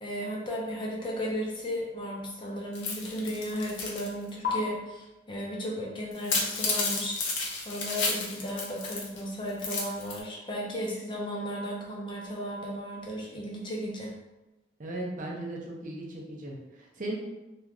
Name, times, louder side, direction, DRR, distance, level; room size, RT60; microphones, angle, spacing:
voice 1, 0.0-14.1, equal, 25° left, -3 dB, 0.5 m, -35 dB
sound 1, 2.7-4.1 4.4-4.5 6.1-9.2 9.5-10.2, left 4 dB, 80° left, 0.6 m, -31 dB
voice 2, 14.8-17.2, right 1 dB, 45° right, -2 dB, 0.5 m, -37 dB
3.0 x 2.3 x 2.4 m, 1.0 s
head